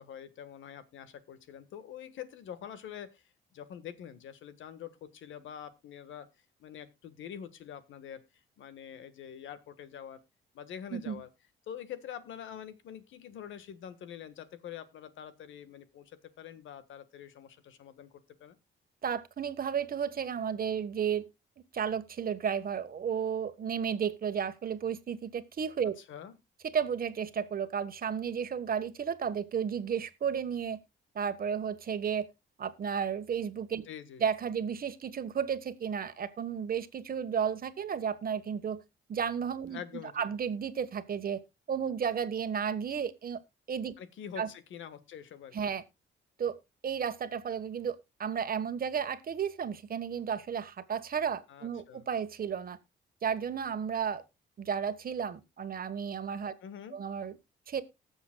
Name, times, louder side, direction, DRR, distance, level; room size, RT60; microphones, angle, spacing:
voice 1, 0.0-3.2 3.5-6.3 6.6-8.2 8.6-10.2 10.5-11.3 11.7-18.1 18.4-18.6 26.1-26.4 33.8-34.2 39.7-40.3 44.0-45.8 51.5-52.0 56.6-57.0, left 9 dB, 75° left, 1.4 m, -45 dB
voice 2, 19.0-21.3 21.7-25.9 26.7-30.8 31.1-32.3 32.6-33.9 34.2-38.8 39.1-39.8 40.1-41.4 41.7-43.4 43.7-43.9 44.4-44.5 45.5-45.8 46.4-46.6 46.8-52.8 53.2-54.2 54.6-56.5 56.9-57.3 57.7-57.8, right 7 dB, 45° right, 1.3 m, -33 dB
19.0 x 7.1 x 2.2 m
cardioid pair, 90°, 20 cm